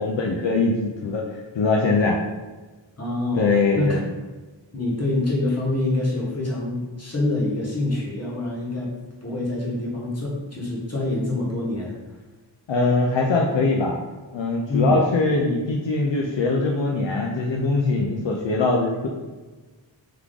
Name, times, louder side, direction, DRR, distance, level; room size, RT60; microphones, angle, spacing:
voice 1, 0.0-2.2 3.4-4.0 12.7-13.9 14.3-19.1, left 3 dB, 75° left, 0 dB, 0.6 m, -22 dB
voice 2, 3.0-4.0 4.7-8.9 9.2-12.0 14.7-15.0, left 2 dB, 35° left, -4 dB, 1.3 m, -25 dB
3.5 x 3.3 x 3.6 m, 1.2 s
wide cardioid pair, 80°, 45 cm